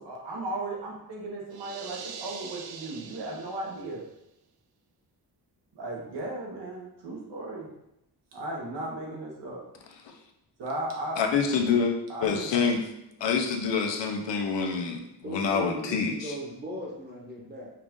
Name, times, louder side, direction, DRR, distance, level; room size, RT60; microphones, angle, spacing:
voice 1, 0.0-4.1 5.7-7.7 8.3-9.6 10.6-11.2 12.1-12.5, right 2 dB, 85° right, -2 dB, 1.3 m, -36 dB
sound 1, 1.5-4.0, right 6 dB, 60° right, 0.5 m, -43 dB
voice 2, 11.2-11.9 12.2-12.8 13.2-16.3, left 5 dB, 90° left, 3 dB, 0.8 m, -26 dB
voice 3, 15.2-17.7, equal, 25° right, -2 dB, 1.0 m, -38 dB
5.6 x 2.5 x 3.6 m, 0.84 s
wide cardioid pair, 160°, 42 cm